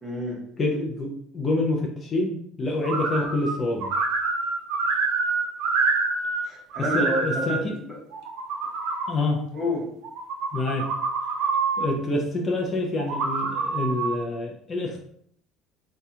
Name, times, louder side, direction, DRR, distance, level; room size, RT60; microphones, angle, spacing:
voice 1, 0.0-0.4 6.4-8.0 9.5-9.9, left 1 dB, 10° right, -5 dB, 0.9 m, -29 dB
voice 2, 0.6-3.9 6.8-7.7 9.1-9.4 10.5-10.9 11.8-15.0, left 2 dB, 20° left, -1 dB, 0.4 m, -27 dB
sound 1, 2.8-3.5 3.8-6.4 6.7-7.6 8.1-9.1 10.0-11.9 13.0-14.1, right 4 dB, 70° right, 0.6 m, -26 dB
2.7 x 2.2 x 3.5 m, 0.66 s
cardioid pair, 175°, 0 cm